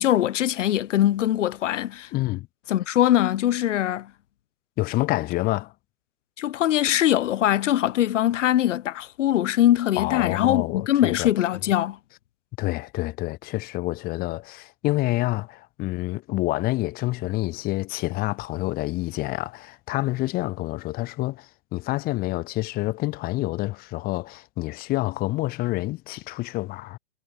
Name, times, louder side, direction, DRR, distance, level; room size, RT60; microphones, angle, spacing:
voice 1, 0.0-2.1 2.7-4.1 6.4-12.0, left 12 dB, 65° left, 0.6 m, -22 dB
voice 2, 2.1-2.5 4.8-5.7 10.0-11.3 12.6-27.0, left 19 dB, 20° left, 2.5 m, -28 dB
hypercardioid pair, 145°, 39 cm